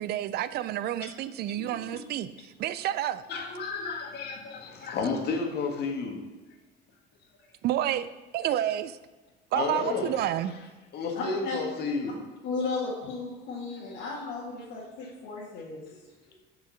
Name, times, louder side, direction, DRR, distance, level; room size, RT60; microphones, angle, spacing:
voice 1, 0.0-3.2 7.6-8.1 8.3-9.0 9.5-10.5, right 12 dB, 50° right, 14 dB, 0.5 m, -29 dB
voice 2, 1.6-2.0 3.3-6.2 7.4-7.5 9.5-10.7 10.9-12.2 15.0-15.1 15.9-16.4, left 4 dB, 50° left, 2 dB, 1.6 m, -33 dB
voice 3, 11.2-11.5 12.4-15.8, left 3 dB, 70° left, -6 dB, 2.0 m, -34 dB
6.3 x 6.1 x 5.7 m, 1.2 s
cardioid pair, 140°, 21 cm